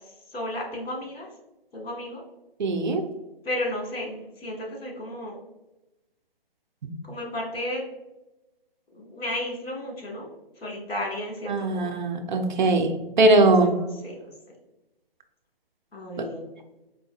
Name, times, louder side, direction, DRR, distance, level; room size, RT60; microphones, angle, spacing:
voice 1, 0.3-1.3 1.7-2.2 3.4-5.4 7.1-7.8 8.9-10.3 10.6-11.9 13.3-14.2 15.9-16.4, left 1 dB, 75° left, -1 dB, 1.4 m, -33 dB
voice 2, 2.6-3.1 11.5-12.9 13.2-13.8 16.2-16.3, right 2 dB, 50° right, 6 dB, 0.5 m, -20 dB
4.5 x 2.6 x 2.3 m, 1.0 s
figure-of-eight pair, 145°, 30 cm